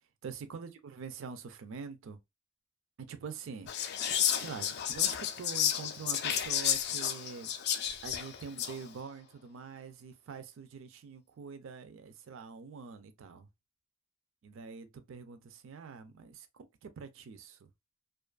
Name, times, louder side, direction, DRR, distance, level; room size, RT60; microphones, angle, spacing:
voice 1, 0.2-2.2 3.1-3.7 4.4-7.5 8.0-13.5 14.4-17.7, right 5 dB, 60° right, 0.4 m, -45 dB
Whispering, 3.7-8.8, left 9 dB, 50° left, 0.4 m, -32 dB
2.5 x 2.4 x 2.2 m
head